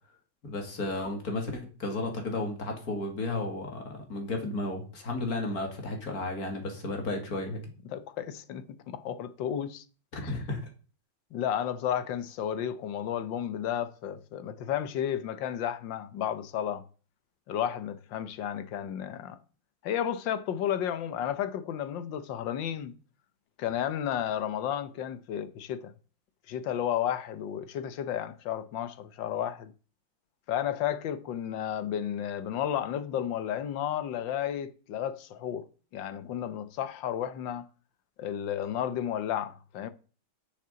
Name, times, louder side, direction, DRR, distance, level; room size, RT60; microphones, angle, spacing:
voice 1, 0.4-7.6 10.1-10.6, left 2 dB, 45° left, 2.7 m, -33 dB
voice 2, 7.9-9.8 10.2-10.3 11.3-16.8 17.5-19.4 19.8-22.9 23.6-25.9 26.5-29.7 30.5-35.6 35.9-37.6 38.2-39.9, left 10 dB, 70° left, 1.5 m, -32 dB
6.7 x 6.7 x 6.8 m
omnidirectional pair, 2.3 m